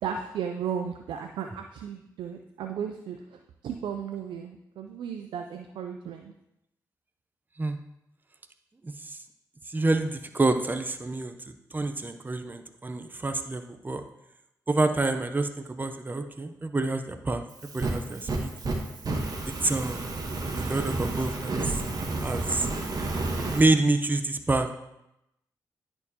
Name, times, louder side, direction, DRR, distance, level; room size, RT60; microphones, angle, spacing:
voice 1, 0.0-6.3, right 7 dB, 85° right, 5 dB, 0.4 m, -35 dB
voice 2, 8.8-9.2 9.7-11.4 11.7-14.0 14.7-18.5 19.5-20.1 20.6-21.8 22.2-22.7 23.5-24.7, right 2 dB, 25° right, 7 dB, 0.6 m, -27 dB
Fire, 17.5-23.6, right 2 dB, 50° right, 1.1 m, -31 dB
10.0 x 4.4 x 2.8 m, 0.85 s
supercardioid pair, 45°, 8 cm